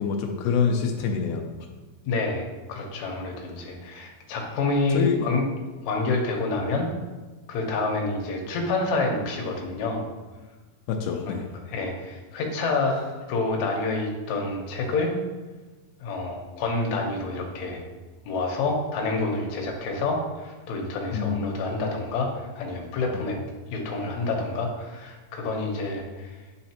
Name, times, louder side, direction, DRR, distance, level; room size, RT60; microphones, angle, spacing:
voice 1, 0.0-1.4 4.9-5.3 10.9-11.5 21.1-21.6 23.1-23.2, left 6 dB, 90° left, 2 dB, 1.8 m, -26 dB
voice 2, 2.1-5.5 5.8-6.9 7.5-10.0 11.3-11.4 11.7-15.1 16.0-17.8 18.3-23.4 23.7-26.4, left 3 dB, 70° left, 0 dB, 1.9 m, -28 dB
8.8 x 4.0 x 2.8 m, 1.2 s
omnidirectional pair, 4.1 m